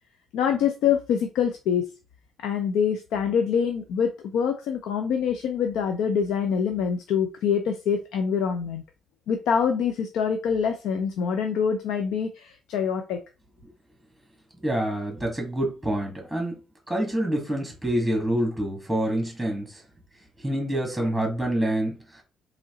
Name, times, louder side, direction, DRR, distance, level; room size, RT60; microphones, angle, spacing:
voice 1, 0.3-1.9 2.4-8.8 9.3-13.2, left 7 dB, 90° left, 5 dB, 0.5 m, -25 dB
voice 2, 14.6-16.5 16.9-19.7 20.4-22.0, right 1 dB, ahead, 1 dB, 1.8 m, -26 dB
3.9 x 3.1 x 3.7 m, 0.31 s
cardioid pair, 90°, 0 cm